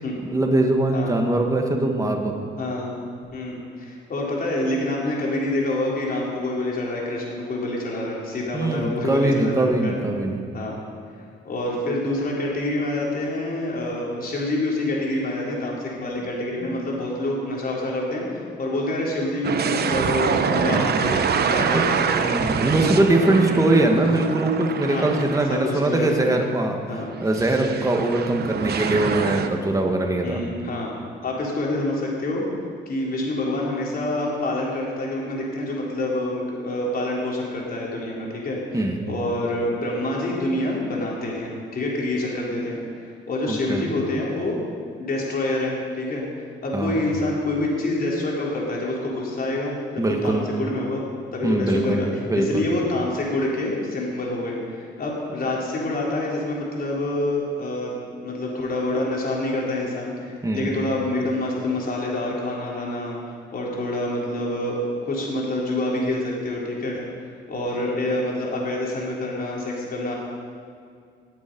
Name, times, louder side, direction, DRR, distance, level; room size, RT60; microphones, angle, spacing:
voice 1, 0.2-2.4 8.5-10.4 16.6-16.8 20.7-21.0 21.4-21.9 22.2-30.4 38.7-39.0 43.5-43.8 46.7-47.0 50.0-50.5 51.4-52.7 60.4-60.8, right 2 dB, 15° right, 2 dB, 1.8 m, -22 dB
voice 2, 2.6-2.9 3.3-10.0 10.5-10.7 11.4-22.3 23.4-23.6 24.9-25.1 25.5-26.4 26.9-27.1 28.1-28.2 29.4-29.5 30.2-30.9 31.2-32.5 32.9-44.6 45.0-51.0 51.3-57.9 58.2-63.2 63.5-67.1 67.5-70.1, left 1 dB, 50° left, -3 dB, 3.7 m, -27 dB
sound 1, 19.4-26.0 26.4-26.5 27.3-29.5, right 6 dB, 55° right, 0.9 m, -25 dB
19.5 x 7.4 x 5.5 m, 2.3 s
cardioid pair, 90°, 20 cm